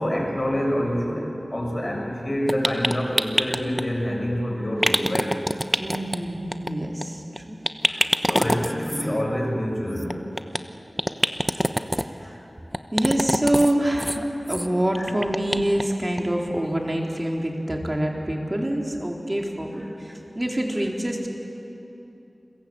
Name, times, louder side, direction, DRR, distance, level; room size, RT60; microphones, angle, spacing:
voice 1, 0.0-5.3 7.9-10.2 11.4-11.6 12.2-12.4 15.0-15.1, equal, 35° left, 0 dB, 6.5 m, -27 dB
sound 1, 2.5-3.8 4.8-6.2 6.5-6.7 7.0-7.1 7.4-7.5 7.6-9.1 10.0-10.6 11.0-12.1 12.7-13.7 14.0-14.2 14.5-14.7 14.9-15.8 16.2-16.3 16.6-16.7, equal, 5° right, 1.0 m, -24 dB
voice 2, 5.8-7.6 11.9-12.4 12.9-21.3, right 1 dB, 25° right, 0 dB, 4.0 m, -26 dB
29.0 x 22.0 x 8.9 m, 3.0 s
wide cardioid pair, 60°, 0 cm